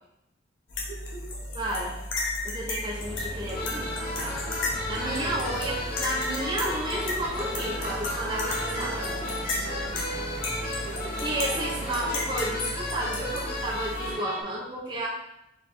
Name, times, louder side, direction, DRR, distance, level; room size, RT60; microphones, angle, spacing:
sound 1, 0.7-14.1, left 2 dB, 70° left, 1.0 m, -34 dB
voice 1, 0.9-1.3 5.0-5.5 8.4-10.2 10.8-12.2, right 3 dB, 80° right, -3 dB, 1.3 m, -41 dB
voice 2, 1.6-2.0 2.4-4.4 4.9-8.9 11.2-15.1, right 1 dB, 25° right, -4 dB, 0.7 m, -32 dB
sound 2, 3.0-12.3, equal, 5° right, 1.4 m, -42 dB
sound 3, 3.5-14.4, left 1 dB, 50° left, 0.7 m, -35 dB
4.6 x 3.4 x 3.2 m, 0.86 s
head